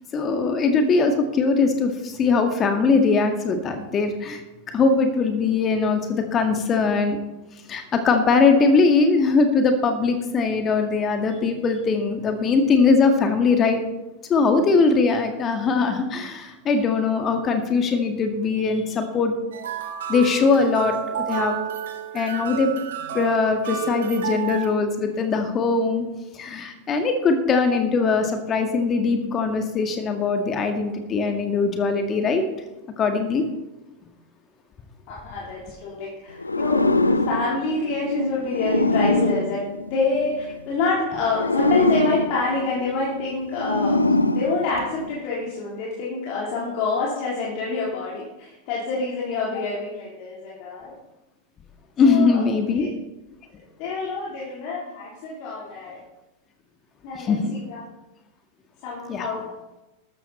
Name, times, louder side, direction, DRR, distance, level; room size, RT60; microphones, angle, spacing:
voice 1, 0.1-4.4 4.7-7.2 7.7-13.8 14.3-19.3 20.1-21.6 22.1-22.7 23.1-26.0 26.3-32.4 33.0-33.4 52.0-52.9 57.1-57.5 59.1-59.2, left 4 dB, 25° left, 6 dB, 1.8 m, -21 dB
sound 1, 19.5-24.7, right 9 dB, 60° right, 1.7 m, -30 dB
voice 2, 35.1-44.0 44.3-50.9 52.0-52.4 52.8-52.9 53.8-56.0 57.0-57.8 58.8-59.5, left 3 dB, 45° left, -5 dB, 3.8 m, -27 dB
sound 2, 36.4-40.5 41.2-45.2, left 2 dB, 80° left, 0.7 m, -24 dB
13.5 x 13.0 x 4.3 m, 0.98 s
figure-of-eight pair, 90°, 0 cm